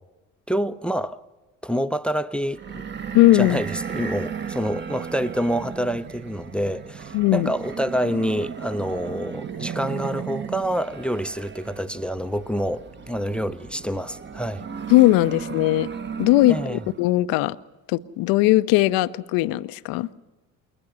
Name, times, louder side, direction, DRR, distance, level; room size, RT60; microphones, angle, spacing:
voice 1, 0.5-1.2 1.6-2.8 3.3-14.6 16.5-16.8, equal, ahead, 0.6 m, -27 dB
sound 1, 2.5-17.1, right 7 dB, 25° right, 1.0 m, -35 dB
voice 2, 3.1-3.6 7.1-7.5 14.9-15.9 16.2-17.6 17.9-20.1, left 17 dB, 55° left, 0.6 m, -19 dB
21.0 x 20.0 x 6.9 m
hypercardioid pair, 65°, 42 cm